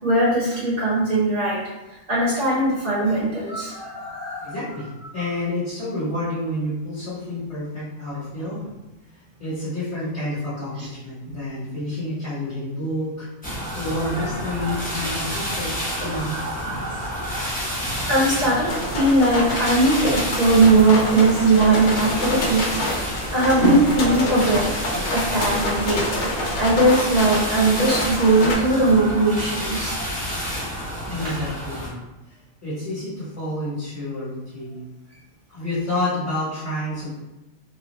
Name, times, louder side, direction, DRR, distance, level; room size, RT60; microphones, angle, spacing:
voice 1, 0.0-1.6 2.1-4.5 10.8-10.9 17.7-29.9 31.2-31.3, right 2 dB, 45° right, -8 dB, 1.2 m, -20 dB
voice 2, 4.4-4.9 5.1-8.8 9.1-13.3 13.8-15.7 16.0-17.1 31.1-34.8 35.5-37.1, left 1 dB, 25° left, -11 dB, 1.1 m, -29 dB
sound 1, 13.4-31.9, equal, 10° left, 0.7 m, -30 dB
sound 2, 18.7-28.6, left 1 dB, 60° left, 0.5 m, -27 dB
3.0 x 2.3 x 3.1 m, 1.0 s
omnidirectional pair, 1.4 m